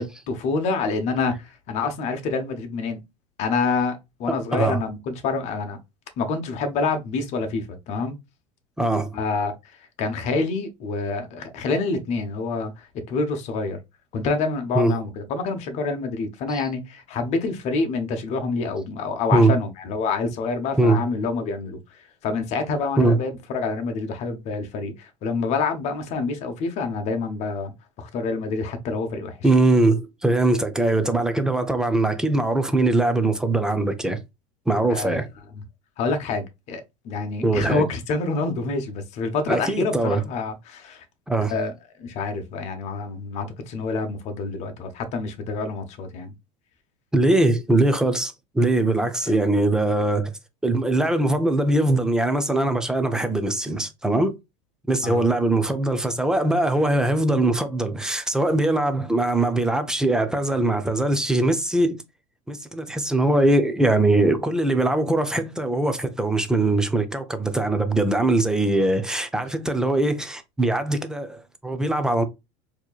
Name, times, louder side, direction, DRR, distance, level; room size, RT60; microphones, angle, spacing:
voice 1, 0.0-3.0 3.4-5.8 6.2-8.2 9.1-13.8 14.1-29.4 34.9-35.2 36.0-41.1 41.5-41.7 42.0-46.3 49.2-49.4 55.0-55.3, left 4 dB, 45° left, 0.9 m, -27 dB
voice 2, 4.3-4.8 8.8-9.2 14.8-15.0 16.5-16.6 19.3-19.5 20.8-21.0 23.0-23.2 29.4-34.2 34.7-35.3 37.4-37.8 39.5-40.2 41.3-41.5 47.1-50.3 50.6-54.4 54.9-62.0 62.5-72.2, right 2 dB, 5° right, 0.5 m, -21 dB
4.3 x 2.9 x 2.3 m
supercardioid pair, 145°, 16 cm